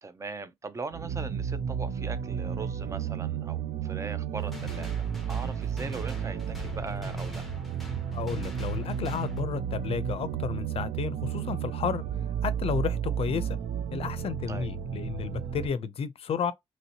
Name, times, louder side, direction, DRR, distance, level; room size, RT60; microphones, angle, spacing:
voice 1, 0.0-7.5 14.5-14.7, right 4 dB, 25° right, 0.5 m, -40 dB
sound 1, 0.9-15.7, right 8 dB, 80° right, 0.4 m, -32 dB
sound 2, 4.4-9.4, left 1 dB, ahead, 0.8 m, -42 dB
voice 2, 8.1-12.0 12.4-13.6 13.9-16.5, left 6 dB, 55° left, 0.5 m, -32 dB
3.0 x 2.8 x 2.7 m
wide cardioid pair, 145°, 12 cm